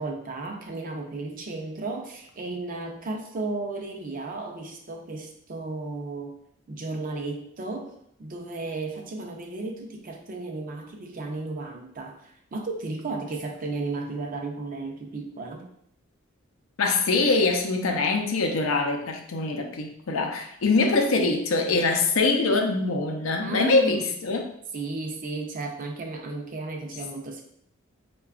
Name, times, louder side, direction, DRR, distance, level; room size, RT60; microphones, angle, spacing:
voice 1, 0.0-6.3 6.7-7.9 8.2-15.7 23.4-24.1 24.7-27.4, right 3 dB, 40° right, 3 dB, 0.5 m, -34 dB
voice 2, 16.8-24.5, left 3 dB, 85° left, 3 dB, 0.5 m, -23 dB
4.6 x 2.2 x 2.4 m, 0.70 s
head